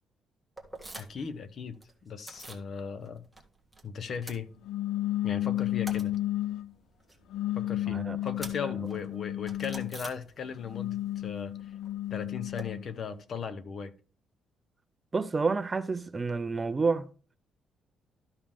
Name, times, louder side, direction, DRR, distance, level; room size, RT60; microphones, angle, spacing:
sound 1, 0.6-1.3 1.6-2.7 3.0-5.1 5.4-10.8 11.0-12.7, right 2 dB, ahead, 1.4 m, -47 dB
voice 1, 1.0-3.3 3.8-4.5 5.2-6.1 7.5-11.5 12.1-13.9, left 6 dB, 40° left, 0.8 m, -37 dB
sound 2, 4.7-6.7 7.3-10.0 10.6-12.9, left 13 dB, 80° left, 0.3 m, -32 dB
voice 2, 15.1-17.1, right 4 dB, 20° right, 0.4 m, -29 dB
12.5 x 5.4 x 3.5 m
cardioid pair, 160°, 0 cm